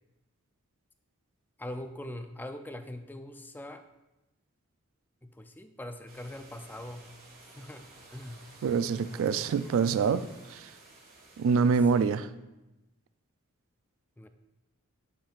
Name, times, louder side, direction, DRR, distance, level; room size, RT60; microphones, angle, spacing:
voice 1, 1.6-3.8 5.2-7.1 7.5-7.9 8.1-8.4 9.1-9.3 9.6-10.0 11.9-12.1 14.2-14.3, left 1 dB, 10° left, 8 dB, 0.4 m, -42 dB
sound 1, 6.1-12.1, right 2 dB, 40° right, 1.5 m, -54 dB
voice 2, 8.6-10.7 11.4-12.3, right 5 dB, 65° right, 13 dB, 0.3 m, -26 dB
10.0 x 5.8 x 2.4 m, 0.99 s
head